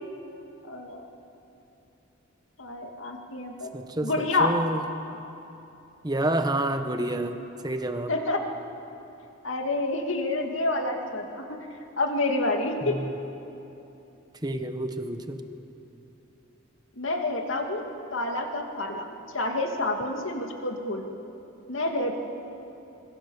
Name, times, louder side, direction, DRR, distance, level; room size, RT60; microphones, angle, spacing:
voice 1, 0.6-1.1 2.6-3.7 4.0-4.6 8.1-8.5 9.4-11.6 12.0-13.0 17.0-17.8 18.1-19.1 19.3-21.1 21.7-22.2, left 2 dB, 80° left, 3 dB, 2.4 m, -28 dB
voice 2, 3.7-4.8 6.0-8.1 12.8-13.1 14.4-15.4, right 1 dB, 20° right, 7 dB, 1.2 m, -29 dB
26.0 x 22.0 x 7.2 m, 2.9 s
head